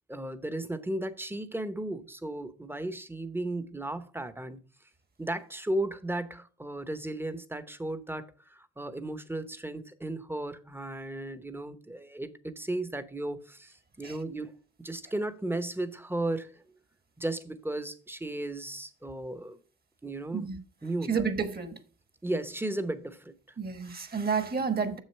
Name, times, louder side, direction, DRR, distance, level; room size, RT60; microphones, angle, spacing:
voice 1, 0.0-4.6 5.2-14.5 14.8-16.6 17.2-19.6 20.0-20.5 20.8-21.1 22.2-23.3, right 1 dB, 5° right, 0.8 m, -35 dB
voice 2, 21.0-21.8 23.6-25.0, right 5 dB, 30° right, 1.2 m, -30 dB
7.2 x 6.4 x 4.4 m
cardioid pair, 90°, 30 cm